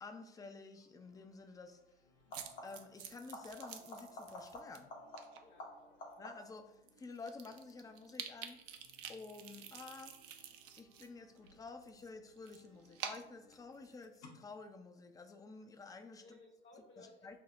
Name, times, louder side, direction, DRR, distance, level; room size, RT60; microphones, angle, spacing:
voice 1, 0.0-1.8 2.6-4.9 6.2-8.6 9.1-10.1 10.8-16.4 17.0-17.4, left 3 dB, 10° left, 6 dB, 0.4 m, -51 dB
sound 1, 0.7-1.0 2.2-3.0 3.3-6.7 12.1-12.7 14.2-14.3, left 1 dB, 65° left, 1.0 m, -51 dB
sound 2, 0.9-14.0, equal, 90° left, 1.1 m, -70 dB
sound 3, 2.3-4.8 5.2-5.4 6.1-6.2 6.6-6.7 6.9-11.1 11.4-14.2, right 8 dB, 55° right, 0.5 m, -49 dB
voice 2, 5.4-6.1 16.2-17.4, left 2 dB, 35° left, -1 dB, 0.8 m, -60 dB
6.0 x 2.0 x 2.5 m, 0.87 s
hypercardioid pair, 65°, 29 cm